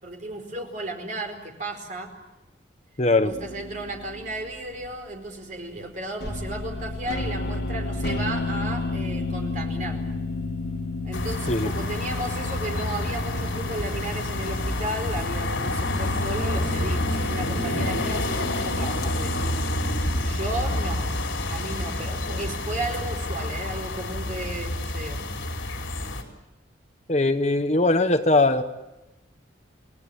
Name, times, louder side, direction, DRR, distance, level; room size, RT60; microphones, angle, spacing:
voice 1, 0.0-2.1 3.2-10.0 11.0-19.5 20.2-21.1 21.5-25.2, right 1 dB, 40° right, 4 dB, 4.7 m, -34 dB
voice 2, 3.0-3.3 11.5-11.7 27.1-28.6, left 2 dB, 35° left, 9 dB, 1.2 m, -20 dB
sound 1, 3.3-4.9 6.2-20.2, left 3 dB, 55° left, 4.4 m, -33 dB
sound 2, 11.1-26.2, left 1 dB, 80° left, 4.5 m, -28 dB
sound 3, 11.3-18.2, equal, 5° right, 7.6 m, -45 dB
30.0 x 18.5 x 9.0 m, 1.0 s
head